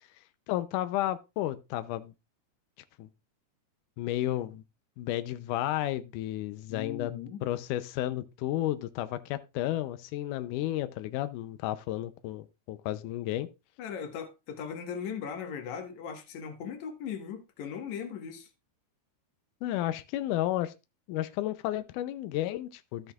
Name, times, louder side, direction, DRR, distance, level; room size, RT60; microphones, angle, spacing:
voice 1, 0.5-2.1 3.0-3.1 4.0-4.6 5.0-7.1 7.4-13.5 19.6-20.7 21.1-23.1, left 14 dB, 90° left, 1.8 m, -32 dB
voice 2, 6.7-7.4 13.8-18.5, left 7 dB, 60° left, 2.3 m, -38 dB
13.0 x 8.9 x 2.3 m
omnidirectional pair, 4.3 m